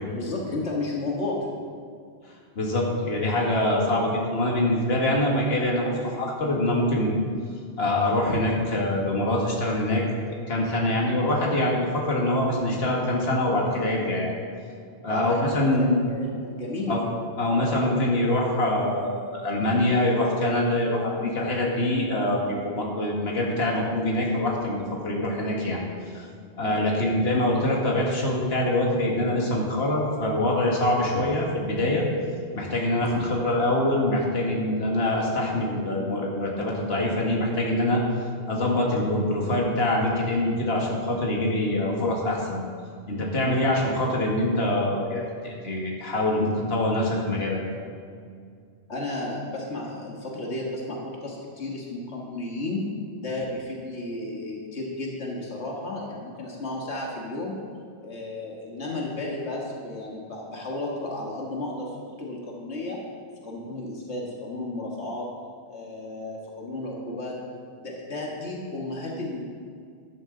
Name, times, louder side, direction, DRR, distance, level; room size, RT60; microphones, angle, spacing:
voice 1, 0.1-1.6 15.1-17.0 26.6-26.8 33.0-33.3 43.4-43.6 48.9-52.9 53.2-57.5 58.0-63.0 63.4-65.3 65.7-67.4 67.8-69.4, left 2 dB, 85° left, -2 dB, 2.0 m, -33 dB
voice 2, 2.6-7.2 7.8-10.0 10.3-14.3 15.0-16.0 16.9-17.0 17.4-25.8 26.1-26.3 26.6-32.0 32.6-38.0 38.5-42.6 43.1-47.6, left 1 dB, 65° left, -2 dB, 2.0 m, -24 dB
13.5 x 11.0 x 3.9 m, 2.2 s
omnidirectional pair, 1.1 m